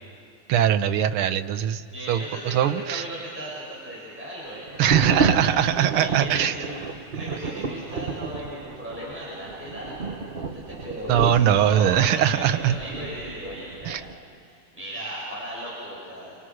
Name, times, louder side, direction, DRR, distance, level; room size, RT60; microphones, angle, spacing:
voice 1, 0.5-3.0 4.8-6.5 7.1-7.3 7.6-7.7 11.1-12.8 13.8-14.0, right 10 dB, 85° right, 8 dB, 1.7 m, -22 dB
voice 2, 1.9-5.6 5.9-16.4, equal, 5° right, -7 dB, 7.2 m, -37 dB
sound 1, 4.7-14.1, right 5 dB, 45° right, 0.7 m, -31 dB
29.0 x 27.0 x 6.4 m, 2.3 s
omnidirectional pair, 2.3 m